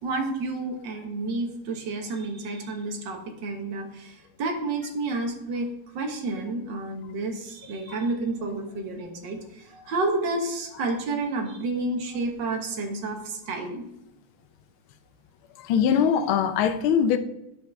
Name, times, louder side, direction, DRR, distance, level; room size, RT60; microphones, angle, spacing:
voice 1, 0.0-5.7 5.9-13.9, right 2 dB, 60° right, 1.9 m, -30 dB
voice 2, 15.6-17.2, left 7 dB, 75° left, 1.5 m, -22 dB
11.0 x 5.8 x 3.5 m
omnidirectional pair, 2.4 m